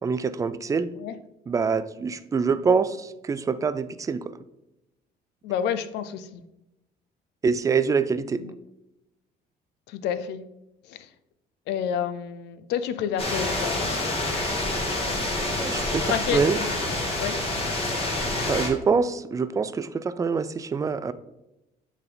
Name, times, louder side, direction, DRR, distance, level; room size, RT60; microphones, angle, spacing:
voice 1, 0.0-0.9 1.5-4.3 7.4-8.4 15.5-16.6 18.5-21.1, right 5 dB, 20° right, 13 dB, 0.4 m, -25 dB
voice 2, 5.4-6.4 8.4-8.5 9.9-10.4 10.9-11.1 11.7-14.0 16.1-16.7 17.2-17.4, left 8 dB, 85° left, 12 dB, 0.6 m, -29 dB
sound 1, 13.2-18.7, left 2 dB, 35° left, 1.8 m, -27 dB
8.1 x 3.6 x 3.9 m, 0.91 s
cardioid pair, 110°, 17 cm